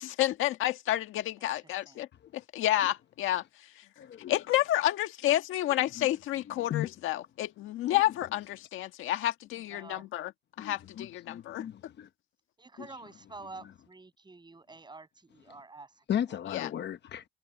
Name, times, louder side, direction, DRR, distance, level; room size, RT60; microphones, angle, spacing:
voice 1, 0.0-2.1 2.3-3.4 4.3-10.3 10.6-11.7 16.5-16.7, left 14 dB, 90° left, 1.5 m, -30 dB
voice 2, 1.4-2.1 9.5-10.1 12.6-16.4, right 3 dB, 20° right, 6.6 m, -49 dB
voice 3, 4.0-4.4 5.8-6.1 6.4-6.9 7.9-8.0 10.6-12.1 16.1-17.2, left 10 dB, 60° left, 1.0 m, -36 dB
cardioid pair, 90°, 20 cm